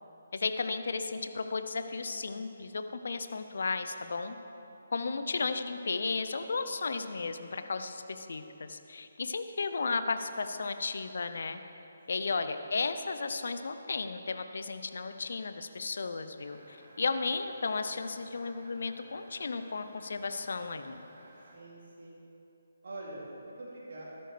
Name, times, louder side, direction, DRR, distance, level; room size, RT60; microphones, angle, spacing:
voice 1, 0.3-4.4 4.9-11.6 12.1-21.1, left 4 dB, 65° left, 9 dB, 0.6 m, -34 dB
sound 1, 16.4-21.6, right 1 dB, 40° right, 2.5 m, -57 dB
voice 2, 21.5-22.2 22.8-24.0, right 2 dB, 60° right, -6 dB, 2.9 m, -45 dB
14.0 x 12.0 x 3.3 m, 2.9 s
figure-of-eight pair, 145°, 0 cm